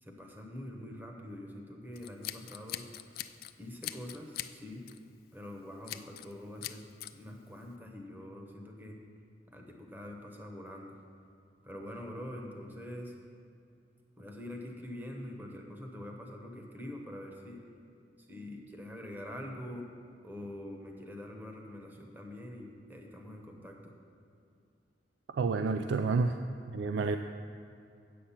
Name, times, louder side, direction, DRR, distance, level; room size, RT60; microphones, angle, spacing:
voice 1, 0.0-2.9 3.6-4.9 5.3-6.8 7.1-9.0 9.5-11.0 11.6-13.1 14.2-17.6 18.3-19.9 20.2-23.9, left 1 dB, 10° right, 1 dB, 1.0 m, -44 dB
Scissors, 2.0-3.5 3.8-4.5 4.9-5.1 5.9-6.3 6.6-7.1, left 13 dB, 55° left, 0.3 m, -41 dB
voice 2, 25.3-26.4 26.7-27.2, right 4 dB, 75° right, 8 dB, 0.3 m, -29 dB
8.5 x 7.7 x 5.7 m, 2.5 s
head